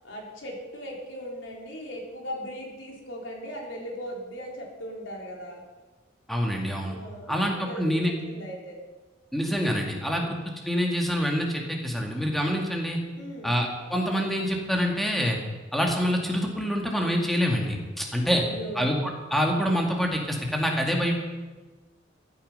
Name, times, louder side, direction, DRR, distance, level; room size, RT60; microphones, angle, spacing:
voice 1, 0.0-5.7 6.9-8.8 10.1-10.4 13.1-13.6 18.3-18.9, equal, 85° left, -1 dB, 3.7 m, -38 dB
voice 2, 6.3-7.0 7.3-8.1 9.3-10.4 10.6-13.0 13.4-15.4 15.7-18.4 18.8-21.1, equal, ahead, 0 dB, 2.0 m, -26 dB
15.0 x 11.5 x 5.5 m, 1.3 s
head